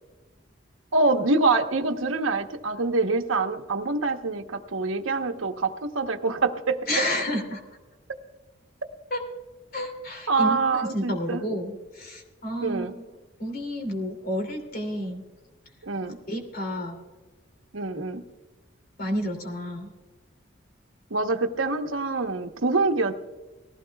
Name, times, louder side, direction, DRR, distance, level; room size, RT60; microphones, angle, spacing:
voice 1, 0.9-6.8 10.3-11.4 12.6-12.9 15.8-16.2 17.7-18.2 21.1-23.2, right 3 dB, 85° right, 6 dB, 1.0 m, -25 dB
voice 2, 6.9-7.6 9.1-9.2 9.7-12.9 13.4-15.2 16.0-17.0 19.0-19.9, equal, 45° left, 4 dB, 2.7 m, -30 dB
19.0 x 15.5 x 2.3 m, 1.3 s
head